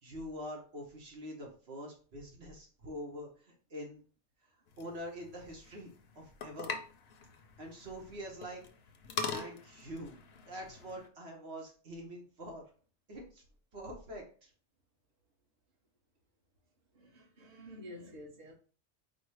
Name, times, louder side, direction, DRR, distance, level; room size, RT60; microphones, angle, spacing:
voice 1, 0.0-4.0 4.8-6.7 7.6-8.6 9.2-10.2 10.5-12.6 13.1-13.4 13.7-14.5, equal, 65° right, 1.3 m, -45 dB
sound 1, 4.7-11.1, left 5 dB, 65° left, 0.9 m, -43 dB
voice 2, 16.9-18.5, left 1 dB, 40° right, 1.1 m, -50 dB
5.0 x 2.1 x 4.6 m
omnidirectional pair, 1.2 m